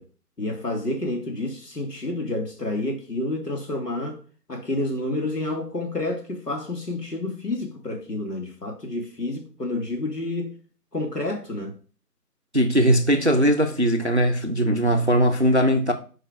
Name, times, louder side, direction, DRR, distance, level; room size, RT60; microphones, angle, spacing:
voice 1, 0.4-4.2 4.5-10.5 10.9-11.8, left 2 dB, 75° left, 2.2 m, -29 dB
voice 2, 12.5-15.9, equal, 45° right, 0.5 m, -20 dB
4.8 x 4.5 x 4.6 m
figure-of-eight pair, 170°, 48 cm